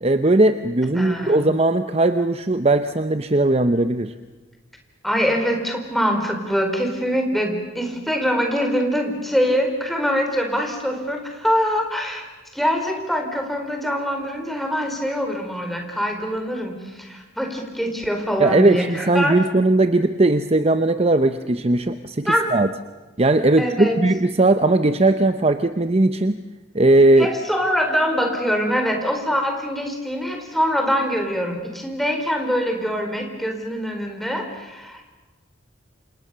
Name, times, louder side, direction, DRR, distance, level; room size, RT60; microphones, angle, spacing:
voice 1, 0.0-4.1 18.4-22.7 23.2-26.4 26.7-27.3, right 2 dB, 30° right, 9 dB, 0.8 m, -18 dB
voice 2, 0.9-1.5 5.0-12.3 12.5-19.4 22.3-22.5 23.6-24.0 27.2-35.0, equal, ahead, 3 dB, 4.2 m, -24 dB
29.5 x 27.0 x 6.8 m, 1.2 s
head